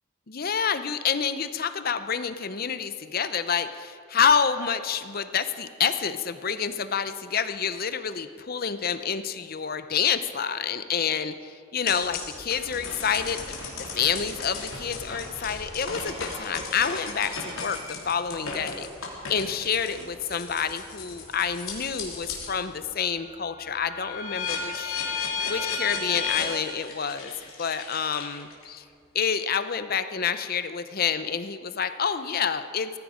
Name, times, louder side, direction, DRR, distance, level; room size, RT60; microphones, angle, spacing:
voice 1, 0.3-13.4 13.9-18.9 19.3-25.0 25.5-27.3 27.6-28.8 29.1-32.9, left 7 dB, 45° left, 11 dB, 0.7 m, -28 dB
sound 1, 11.9-22.6 23.0-28.6, left 5 dB, 90° left, 3.1 m, -35 dB
18.0 x 14.5 x 5.0 m, 2.2 s
head